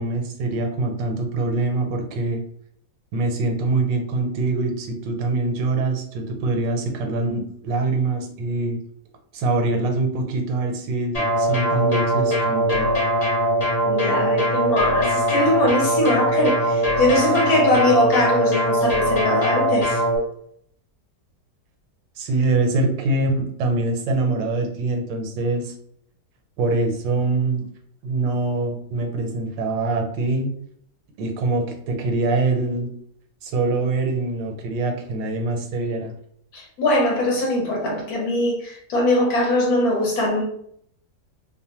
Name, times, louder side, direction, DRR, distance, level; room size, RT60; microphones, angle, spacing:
voice 1, 0.0-2.4 3.1-8.8 9.3-12.9 22.2-25.7 26.6-27.7 28.0-30.5 31.2-32.9 33.4-36.1, right 3 dB, 80° right, 1.3 m, -24 dB
sound 1, 11.1-20.2, equal, 45° left, 0.5 m, -21 dB
voice 2, 13.8-20.0 36.5-40.4, left 1 dB, 65° left, 1.1 m, -21 dB
2.9 x 2.1 x 2.8 m
omnidirectional pair, 1.9 m